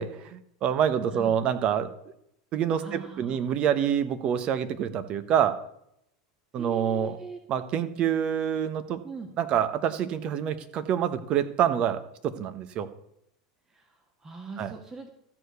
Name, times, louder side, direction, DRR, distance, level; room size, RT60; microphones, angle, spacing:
voice 1, 0.0-1.9 2.5-5.6 6.5-7.2 7.5-9.0 9.4-12.9 14.6-14.7, right 9 dB, 45° right, 11 dB, 1.1 m, -27 dB
voice 2, 2.8-3.4 6.5-7.4 9.0-9.3 13.7-15.1, right 4 dB, 20° right, 4 dB, 1.5 m, -41 dB
13.5 x 4.8 x 6.8 m, 0.76 s
hypercardioid pair, 85°, 2 cm